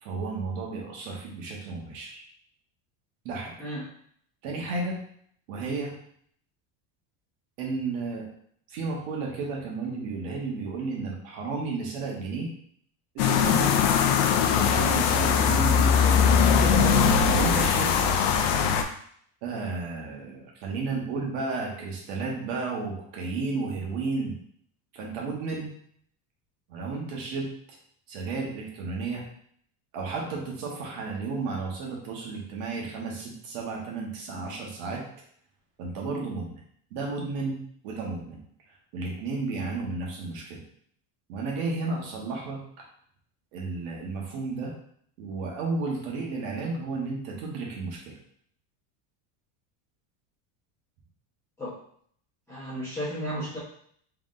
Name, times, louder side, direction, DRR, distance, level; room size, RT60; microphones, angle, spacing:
voice 1, 0.0-2.2 3.2-3.5 4.4-5.0 5.5-5.9 7.6-8.3 8.7-12.5 13.1-13.8 14.5-16.5 17.2-18.2 19.4-24.3 24.9-25.7 26.7-27.5 28.1-29.2 29.9-35.0 35.8-36.6 36.9-37.6 37.8-38.4 38.9-40.6 41.3-42.8 43.5-44.7 45.2-48.2, right 3 dB, 65° right, -1 dB, 1.3 m, -33 dB
voice 2, 3.6-3.9 51.6-51.8 52.5-53.6, equal, 5° left, -13 dB, 0.9 m, -33 dB
sound 1, 13.2-18.8, left 7 dB, 70° left, 0.6 m, -21 dB
3.8 x 3.6 x 2.5 m, 0.63 s
cardioid pair, 175°, 47 cm